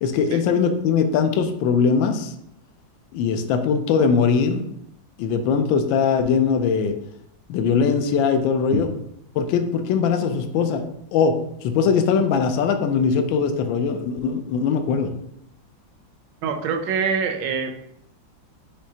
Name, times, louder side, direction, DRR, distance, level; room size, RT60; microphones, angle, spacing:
voice 1, 0.0-2.3 3.1-4.7 5.2-7.0 7.5-8.9 9.3-10.8 11.1-15.1, left 6 dB, 85° left, 7 dB, 1.3 m, -21 dB
voice 2, 16.4-17.9, right 5 dB, 75° right, 5 dB, 1.2 m, -25 dB
6.0 x 3.2 x 2.8 m, 0.76 s
omnidirectional pair, 2.1 m